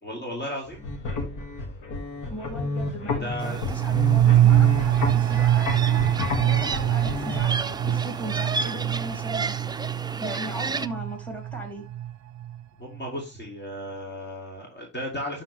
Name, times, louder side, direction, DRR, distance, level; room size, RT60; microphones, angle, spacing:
voice 1, 0.0-0.8 3.2-3.8 7.8-7.9 12.8-15.4, left 1 dB, 35° left, 2.6 m, -35 dB
sound 1, 0.6-7.4, left 3 dB, 80° left, 1.8 m, -31 dB
voice 2, 2.3-9.5 10.2-11.9, right 2 dB, 5° left, 3.1 m, -38 dB
sound 2, 3.2-12.6 12.9-13.0, right 12 dB, 65° right, 0.5 m, -24 dB
sound 3, 3.4-10.9, right 4 dB, 15° right, 0.4 m, -33 dB
11.5 x 3.9 x 3.2 m
cardioid pair, 90°, 30 cm